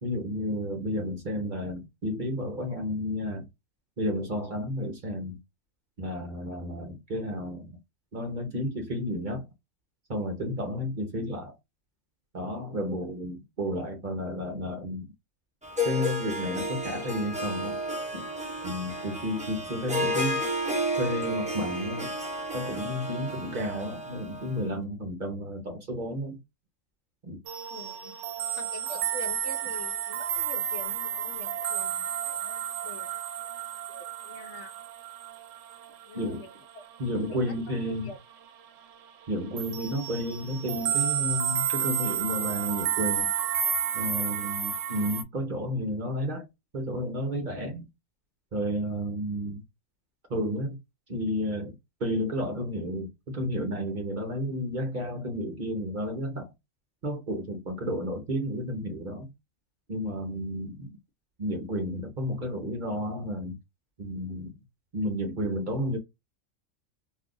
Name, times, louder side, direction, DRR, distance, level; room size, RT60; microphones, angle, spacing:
voice 1, 0.0-3.5 4.0-5.4 6.0-7.8 8.1-9.5 10.1-11.6 12.3-15.1 15.8-17.8 18.1-18.3 18.6-20.4 21.0-22.1 22.5-26.4 27.2-27.4 36.1-36.5 37.0-38.1 39.3-43.3 43.9-47.9 48.5-49.6 50.3-50.8 51.1-51.7 52.0-56.5 57.0-59.3 59.9-60.9 61.4-63.6 64.0-64.5 64.9-66.0, equal, 45° right, 0.8 m, -32 dB
Harp, 15.6-24.6, equal, 10° right, 0.6 m, -32 dB
sound 1, 27.5-37.9 38.1-38.5 38.8-45.2, right 9 dB, 80° right, 0.9 m, -31 dB
voice 2, 27.7-28.2 28.6-33.1 33.9-34.8 36.1-36.8 37.3-38.2 44.3-44.6, left 3 dB, 65° left, 1.0 m, -45 dB
2.6 x 2.4 x 3.6 m
omnidirectional pair, 1.3 m